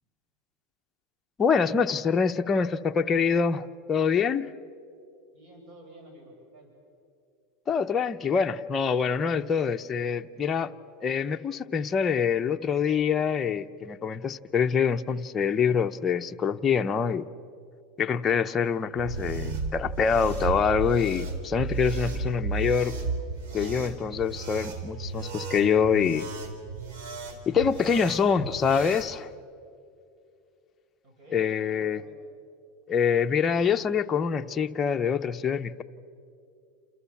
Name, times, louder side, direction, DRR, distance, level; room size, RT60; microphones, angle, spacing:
voice 1, 1.4-4.5 7.7-10.7 11.0-17.3 18.0-23.0 23.5-26.3 27.5-29.3 31.3-32.0 32.9-35.8, left 6 dB, 25° left, 6 dB, 0.9 m, -25 dB
voice 2, 5.3-6.7 31.0-32.2, right 1 dB, 45° right, 2 dB, 7.3 m, -51 dB
sound 1, 18.9-29.1, right 4 dB, 65° right, 3.8 m, -34 dB
29.0 x 28.5 x 7.2 m, 2.5 s
supercardioid pair, 130°, 0 cm